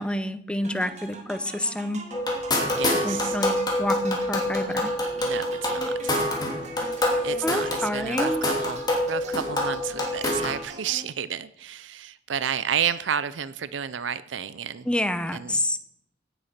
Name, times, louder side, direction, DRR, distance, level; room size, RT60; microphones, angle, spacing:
voice 1, 0.0-2.0 3.0-4.9 7.4-8.4 14.9-15.8, left 1 dB, 5° left, 11 dB, 0.7 m, -28 dB
sound 1, 0.6-11.3, right 2 dB, 40° right, 2.2 m, -43 dB
sound 2, 2.1-10.6, left 1 dB, 20° left, 2.9 m, -26 dB
voice 2, 2.7-3.4 5.1-6.2 6.8-14.9 15.3-15.6, right 8 dB, 80° right, 15 dB, 0.6 m, -31 dB
17.0 x 8.1 x 5.9 m, 0.77 s
head